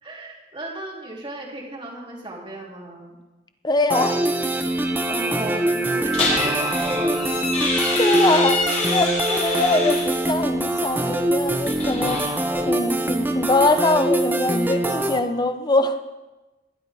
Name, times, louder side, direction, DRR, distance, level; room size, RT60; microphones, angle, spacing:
voice 1, 0.0-3.2 5.1-7.4, right 1 dB, 30° right, -2 dB, 2.8 m, -35 dB
voice 2, 3.6-4.2 8.0-12.3 12.7-16.0, left 2 dB, 25° left, 9 dB, 0.8 m, -22 dB
sound 1, 3.9-15.2, right 1 dB, 10° right, 0.8 m, -23 dB
sound 2, 6.1-10.2 11.5-12.7, left 2 dB, 40° left, 5.0 m, -26 dB
20.0 x 12.0 x 3.5 m, 1.1 s
head